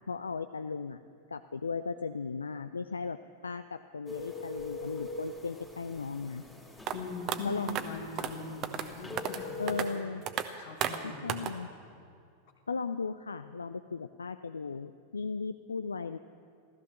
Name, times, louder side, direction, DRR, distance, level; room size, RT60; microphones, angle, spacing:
voice 1, 0.1-1.0 1.3-3.2 3.4-6.4 7.4-7.9 9.6-10.2 11.0-11.7 12.7-16.2, left 4 dB, 75° left, 10 dB, 0.4 m, -36 dB
sound 1, 4.1-9.9, left 2 dB, 5° left, 2.2 m, -43 dB
voice 2, 6.9-10.0 10.6-11.4, left 4 dB, 50° left, 2 dB, 2.3 m, -41 dB
sound 2, 6.9-7.0 7.3-7.4 7.7-7.8 8.2-8.3 8.6-8.9 9.2-9.4 9.7-9.9 10.3-10.4 10.8-11.0 11.3-11.5, right 10 dB, 35° right, 0.9 m, -32 dB
15.5 x 13.5 x 6.7 m, 2.3 s
figure-of-eight pair, 90°, 0 cm